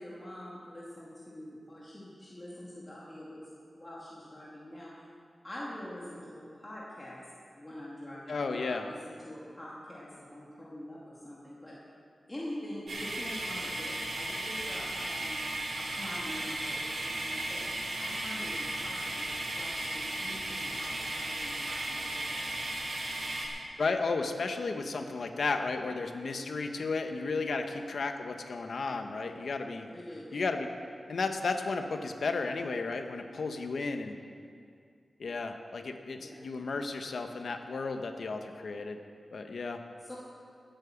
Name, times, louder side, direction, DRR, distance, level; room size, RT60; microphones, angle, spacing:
voice 1, 0.0-3.5 3.7-4.9 5.4-7.2 7.6-11.7 12.3-15.4 15.7-22.7 27.6-27.8 29.9-30.3 36.2-36.5 40.0-40.2, left 1 dB, 15° left, -7 dB, 2.4 m, -45 dB
voice 2, 8.3-8.9 23.8-29.9 30.3-30.7 31.1-34.2 35.2-39.0 39.3-39.8, left 4 dB, 65° left, 6 dB, 1.1 m, -33 dB
sound 1, 12.9-23.5, right 1 dB, 60° right, 3.6 m, -35 dB
16.5 x 9.0 x 7.2 m, 2.3 s
wide cardioid pair, 145°, 0 cm